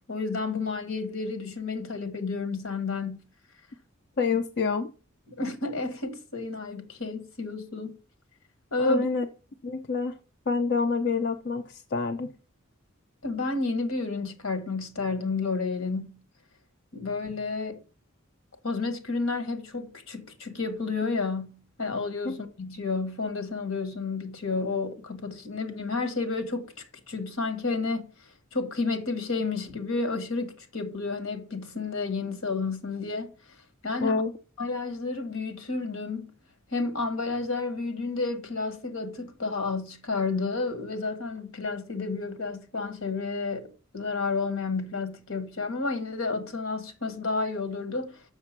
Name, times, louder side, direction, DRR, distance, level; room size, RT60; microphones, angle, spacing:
voice 1, 0.0-3.2 5.3-7.9 8.7-9.1 13.2-16.2 16.9-17.8 18.6-28.1 28.5-33.3 33.8-34.2 34.6-36.3 36.7-48.2, left 3 dB, 75° left, 1.6 m, -31 dB
voice 2, 4.2-4.9 8.8-9.3 9.6-10.1 10.5-12.3 22.3-22.4 34.0-34.3, left 4 dB, 50° left, 0.6 m, -27 dB
6.8 x 6.5 x 5.9 m
head